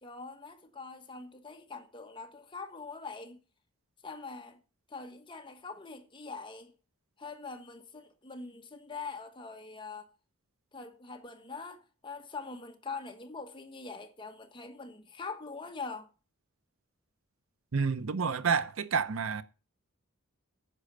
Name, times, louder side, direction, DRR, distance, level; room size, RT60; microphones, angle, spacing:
voice 1, 0.0-3.4 4.0-4.6 4.9-6.7 7.2-10.1 10.7-16.1, left 4 dB, 20° left, 1.2 m, -43 dB
voice 2, 17.7-19.4, right 5 dB, 70° right, 0.7 m, -29 dB
9.9 x 6.3 x 6.6 m
head